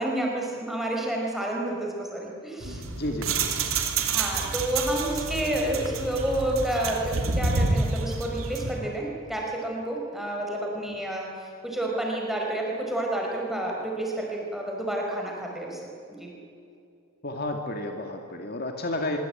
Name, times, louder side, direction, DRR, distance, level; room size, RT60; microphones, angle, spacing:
voice 1, 0.0-2.8 4.0-11.3 11.6-15.8 16.1-16.3, right 1 dB, ahead, -2 dB, 5.3 m, -30 dB
sound 1, 2.6-8.8, right 3 dB, 75° right, 3.1 m, -28 dB
voice 2, 2.9-3.7 17.2-19.2, left 1 dB, 45° left, 3 dB, 2.2 m, -31 dB
24.5 x 23.0 x 9.2 m, 2.5 s
head